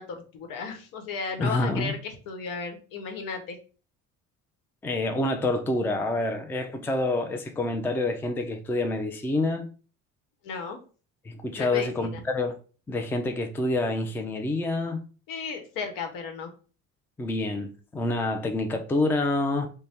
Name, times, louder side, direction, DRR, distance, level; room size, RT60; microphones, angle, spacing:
voice 1, 0.0-3.6 10.4-10.8 11.5-12.2 15.3-16.5, left 5 dB, 75° left, 1.0 m, -35 dB
voice 2, 1.4-1.9 4.8-9.7 11.2-12.5 12.9-15.0 17.2-19.7, left 2 dB, 5° left, 0.4 m, -27 dB
3.3 x 2.2 x 4.2 m
cardioid pair, 115°, 33 cm